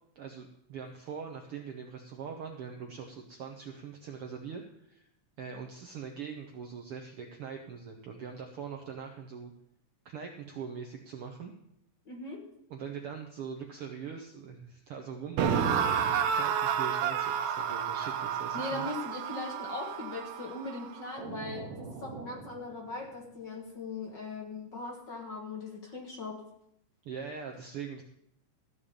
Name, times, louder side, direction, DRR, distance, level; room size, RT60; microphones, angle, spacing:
voice 1, 0.1-5.1 5.4-9.5 10.0-11.5 12.7-18.9 27.0-28.0, right 6 dB, 65° right, 3 dB, 1.4 m, -42 dB
voice 2, 12.1-12.4 18.5-26.4, left 3 dB, 40° left, 0 dB, 1.9 m, -39 dB
sound 1, 15.4-22.5, right 7 dB, 90° right, 2.5 m, -31 dB
14.0 x 5.3 x 8.5 m, 0.75 s
omnidirectional pair, 3.6 m